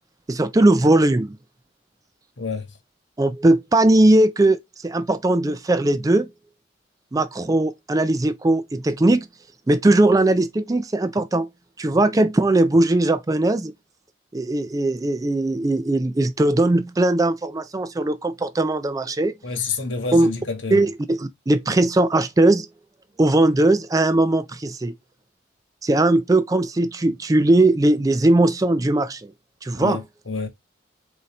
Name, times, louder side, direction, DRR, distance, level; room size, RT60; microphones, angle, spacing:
voice 1, 0.3-1.4 3.2-6.3 7.1-9.3 9.7-11.5 11.8-13.7 14.3-19.3 20.1-20.3 20.7-22.7 23.2-24.9 25.8-29.3 29.6-30.0, right 2 dB, 20° right, 0.3 m, -19 dB
voice 2, 19.4-20.8 29.7-30.5, left 4 dB, 80° left, 1.5 m, -28 dB
4.1 x 3.9 x 3.1 m
head